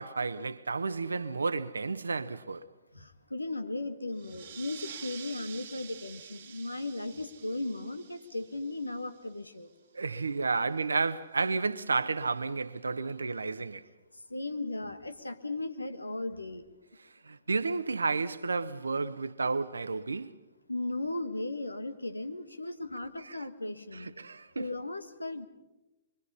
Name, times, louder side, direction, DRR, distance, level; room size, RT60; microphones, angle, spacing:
voice 1, 0.0-2.7 9.9-13.8 17.3-20.4 23.3-23.4 23.9-24.7, right 4 dB, 80° right, 1.0 m, -31 dB
voice 2, 2.9-9.7 14.3-16.7 20.7-24.1 24.6-25.5, left 2 dB, 90° left, 1.6 m, -36 dB
sound 1, 4.1-9.4, right 8 dB, 55° right, 1.4 m, -48 dB
25.0 x 24.0 x 5.6 m
figure-of-eight pair, 115°, 0 cm